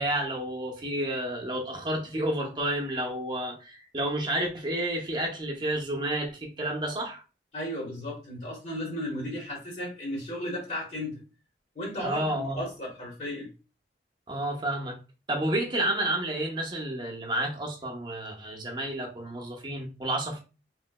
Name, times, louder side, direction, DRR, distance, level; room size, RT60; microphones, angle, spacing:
voice 1, 0.0-7.2 12.0-12.6 14.3-15.0 15.3-20.4, right 1 dB, 25° right, 0.7 m, -30 dB
voice 2, 7.5-11.2 11.7-13.5, left 1 dB, 40° left, 1.1 m, -35 dB
3.1 x 3.0 x 2.2 m
head